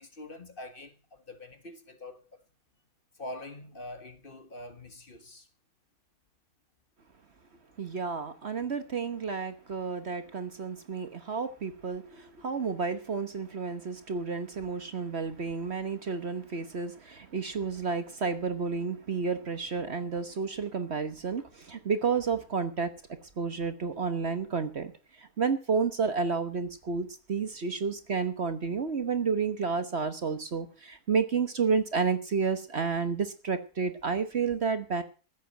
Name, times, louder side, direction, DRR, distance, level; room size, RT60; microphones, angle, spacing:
voice 1, 0.0-2.3 3.2-5.5, left 1 dB, 35° left, 1.6 m, -44 dB
voice 2, 7.8-22.9 23.2-35.0, right 5 dB, 45° right, 1.3 m, -31 dB
15.0 x 8.4 x 7.6 m
omnidirectional pair, 1.6 m